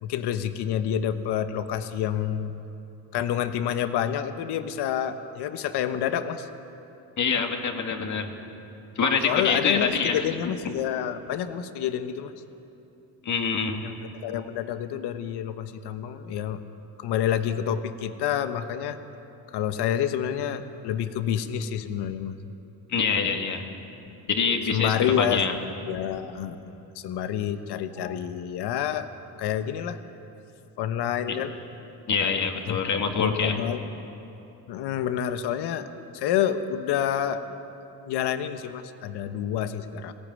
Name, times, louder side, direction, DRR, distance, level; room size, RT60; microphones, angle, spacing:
voice 1, 0.0-2.5 3.1-6.5 9.2-12.3 13.8-16.6 17.0-19.0 19.5-22.4 24.1-24.2 24.7-25.6 25.9-29.1 29.4-30.0 30.8-31.5 32.7-32.8 33.2-33.8 34.7-35.9 36.1-37.4 38.1-40.1, left 9 dB, 80° left, 10 dB, 1.2 m, -28 dB
voice 2, 7.2-8.3 9.0-10.2 13.2-13.9 22.9-23.6 24.3-25.5 31.3-31.4 32.1-33.6, left 5 dB, 45° left, 4 dB, 2.2 m, -25 dB
21.0 x 16.0 x 9.5 m, 2.9 s
cardioid pair, 110°, 40 cm